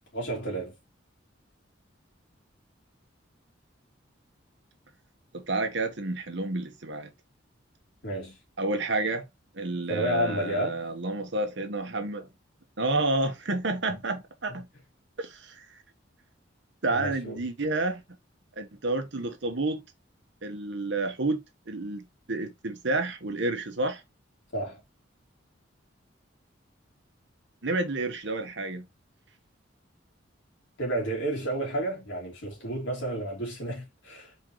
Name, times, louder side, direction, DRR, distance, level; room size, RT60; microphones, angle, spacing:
voice 1, 0.1-0.7 8.0-8.4 9.9-10.8 16.9-17.4 24.5-24.8 30.8-34.4, right 1 dB, 65° left, 2.7 m, -31 dB
voice 2, 5.3-7.1 8.6-9.2 9.5-12.3 12.8-14.7 15.2-15.6 16.8-18.0 18.6-19.8 20.4-24.0 27.6-28.9, right 2 dB, 65° right, 1.1 m, -30 dB
4.5 x 3.9 x 3.1 m
head